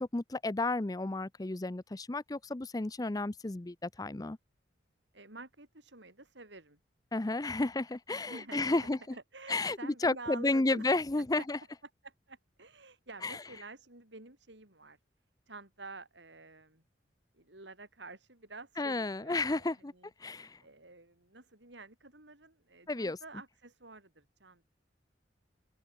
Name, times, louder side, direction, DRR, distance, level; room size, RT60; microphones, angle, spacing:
voice 1, 0.0-4.4 7.1-9.0 9.5-11.6 13.2-13.4 18.8-19.9 20.2-20.6 22.9-23.2, left 2 dB, 20° left, 0.5 m, -32 dB
voice 2, 5.1-6.8 8.1-10.8 11.4-11.5 12.0-15.0 15.5-16.8 17.3-24.7, right 3 dB, 75° right, 6.2 m, -50 dB
head